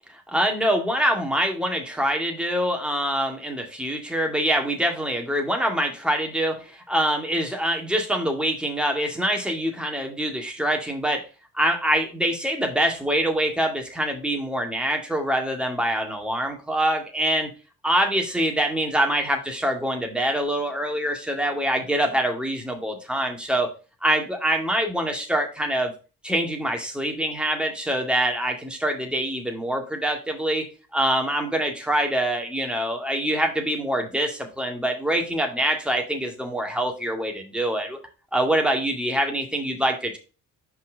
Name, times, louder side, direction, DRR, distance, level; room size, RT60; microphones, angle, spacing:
voice 1, 0.3-11.3 11.5-17.5 17.8-23.7 24.0-25.9 26.2-30.7 30.9-38.0 38.3-40.2, right 1 dB, ahead, 2 dB, 2.0 m, -25 dB
5.3 x 4.3 x 5.0 m, 0.33 s
hypercardioid pair, 45°, 42 cm